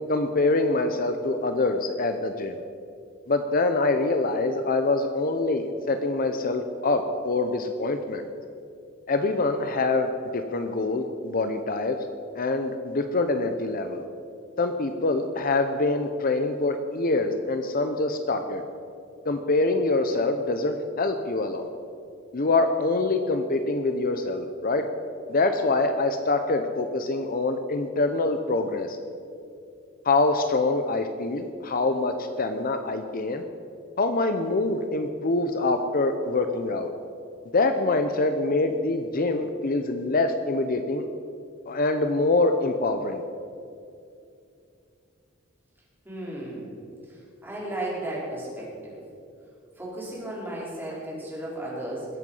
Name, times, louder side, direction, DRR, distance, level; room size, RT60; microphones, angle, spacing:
voice 1, 0.0-2.6 3.3-8.3 9.1-12.0 12.3-14.0 14.6-18.6 19.3-21.7 22.3-24.9 25.3-29.0 30.0-33.4 34.0-36.9 37.5-41.0 41.7-43.2, left 2 dB, 45° left, 7 dB, 0.8 m, -25 dB
voice 2, 46.0-46.7 47.4-49.0 49.8-52.1, right 1 dB, 10° right, -6 dB, 4.3 m, -34 dB
21.0 x 8.1 x 5.5 m, 2.5 s
head